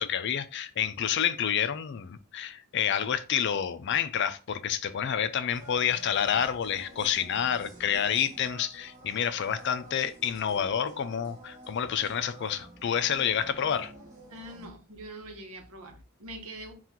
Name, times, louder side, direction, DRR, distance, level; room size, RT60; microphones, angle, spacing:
voice 1, 0.0-13.9, left 8 dB, 55° left, 0.4 m, -29 dB
sound 1, 5.5-14.7, right 1 dB, 35° right, 0.9 m, -49 dB
voice 2, 14.3-16.7, right 1 dB, 80° right, 0.9 m, -43 dB
4.4 x 2.4 x 3.7 m
head